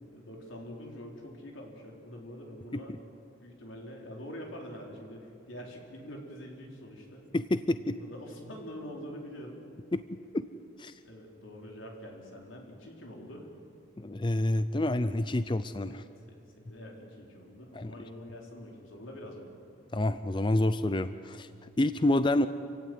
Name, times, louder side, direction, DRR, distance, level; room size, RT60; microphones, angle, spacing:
voice 1, 0.0-2.9 3.4-7.3 7.9-9.6 11.0-13.5 15.8-16.1 16.6-19.5, equal, 90° left, 0 dB, 4.7 m, -45 dB
voice 2, 7.3-8.0 9.9-10.0 10.3-10.5 10.8-10.9 14.0-16.0 17.7-17.9 19.9-22.5, left 1 dB, 25° left, 12 dB, 0.5 m, -28 dB
28.0 x 16.5 x 9.4 m, 2.6 s
head